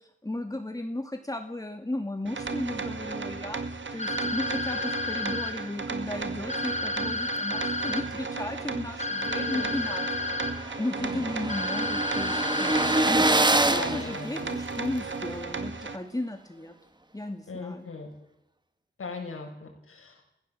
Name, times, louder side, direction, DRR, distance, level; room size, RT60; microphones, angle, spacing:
voice 1, 0.2-10.1 10.8-12.8 13.1-16.7 17.1-17.9, left 1 dB, 15° left, 4 dB, 2.5 m, -35 dB
sound 1, 2.3-16.0, right 4 dB, 60° right, 2.1 m, -35 dB
sound 2, 4.0-5.5 6.5-8.0 9.0-10.5 11.5-13.0, left 3 dB, 35° left, 4.7 m, -31 dB
voice 2, 9.3-9.7 11.0-11.2 13.7-14.5 17.5-18.1 19.0-20.3, left 3 dB, 90° left, 2 dB, 7.2 m, -38 dB
sound 3, 9.4-9.5 9.8-9.9 10.1-15.0, right 1 dB, 20° right, 1.6 m, -26 dB
29.5 x 16.5 x 7.9 m, 0.80 s
wide cardioid pair, 80°, 21 cm